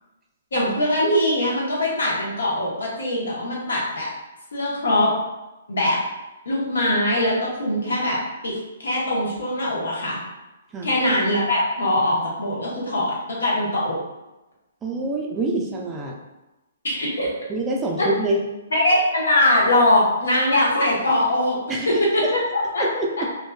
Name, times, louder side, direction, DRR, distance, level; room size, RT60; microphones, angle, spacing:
voice 1, 0.5-4.1 4.5-5.1 5.7-6.0 6.5-8.2 8.4-8.5 8.8-10.2 10.8-14.0 16.8-17.3 18.0-18.1 18.7-21.6 21.9-22.9, left 1 dB, 85° left, -4 dB, 0.9 m, -21 dB
voice 2, 14.8-16.2 17.5-18.4 21.7-22.3 22.8-23.3, right 2 dB, 15° right, -1 dB, 0.3 m, -26 dB
2.6 x 2.2 x 2.2 m, 1.0 s
hypercardioid pair, 150°, 0 cm